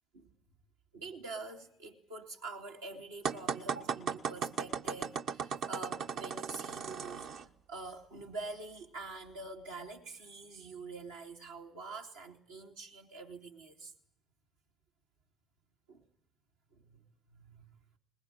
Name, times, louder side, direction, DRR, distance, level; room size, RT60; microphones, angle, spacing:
voice 1, 0.9-13.9 15.9-16.0 16.7-17.0 17.3-17.7, right 3 dB, 85° right, 2.7 m, -46 dB
sound 1, 3.2-7.4, right 6 dB, 60° right, 1.2 m, -36 dB
21.5 x 20.5 x 10.0 m
hypercardioid pair, 55°, 0 cm